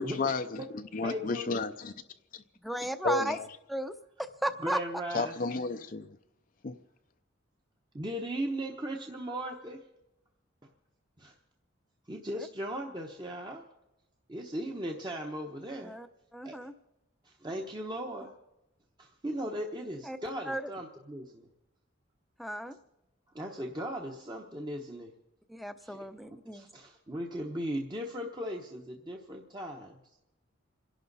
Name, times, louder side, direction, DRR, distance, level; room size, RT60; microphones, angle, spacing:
voice 1, 0.0-1.9 2.3-2.4 3.0-3.5 5.1-6.1 6.6-6.8, left 3 dB, 45° left, 0.5 m, -32 dB
voice 2, 1.0-1.5 4.6-5.3 7.9-9.8 11.2-11.3 12.1-13.6 14.3-15.9 16.4-16.6 17.2-18.4 19.0-21.5 23.3-25.1 25.8-26.0 26.5-29.9, right 1 dB, 20° right, 0.9 m, -37 dB
voice 3, 2.6-3.4 3.7-3.9 4.2-4.8 12.4-12.5 15.8-16.1 16.3-16.7 20.0-20.2 20.5-20.7 22.4-22.8 25.5-26.7, right 1 dB, ahead, 0.7 m, -34 dB
27.5 x 11.0 x 4.0 m
head